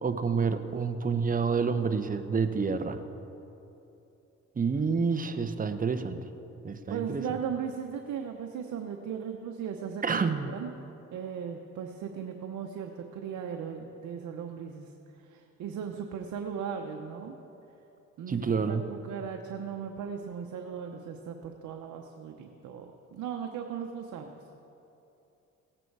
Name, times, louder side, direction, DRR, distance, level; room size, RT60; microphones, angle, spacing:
voice 1, 0.0-3.0 4.6-6.2 6.6-7.2 10.0-10.5 18.3-18.8, right 5 dB, 30° right, 8 dB, 0.8 m, -28 dB
voice 2, 6.9-10.7 11.1-14.9 15.2-17.3 18.2-24.3, right 7 dB, 75° right, 3 dB, 0.9 m, -37 dB
17.0 x 9.0 x 4.7 m, 2.9 s
cardioid pair, 90°, 30 cm